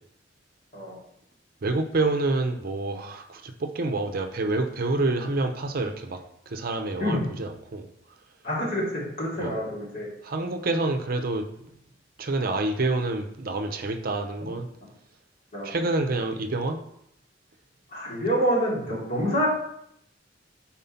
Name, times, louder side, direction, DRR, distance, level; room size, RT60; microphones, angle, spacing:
voice 1, 1.6-6.2 6.5-7.9 9.4-9.5 10.2-11.4 12.2-14.7 15.6-16.8, right 2 dB, 50° right, 5 dB, 0.6 m, -27 dB
voice 2, 8.4-10.1 15.5-15.7 17.9-19.5, equal, 50° left, -6 dB, 2.8 m, -27 dB
5.4 x 4.3 x 5.6 m, 0.74 s
head